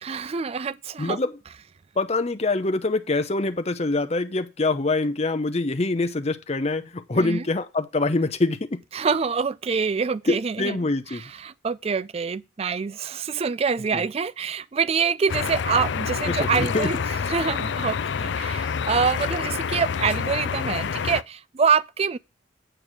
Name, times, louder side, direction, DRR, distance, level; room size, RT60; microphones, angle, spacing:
voice 1, 0.0-1.2 7.1-7.4 8.9-10.8 11.4-17.0 17.3-22.2, right 5 dB, 35° right, 0.4 m, -25 dB
voice 2, 1.0-1.3 2.0-8.8 10.3-11.2 13.9-14.0 16.3-16.9, left 2 dB, 35° left, 0.8 m, -25 dB
sound 1, 15.3-21.2, left 6 dB, 70° left, 0.4 m, -27 dB
9.0 x 4.6 x 6.6 m
head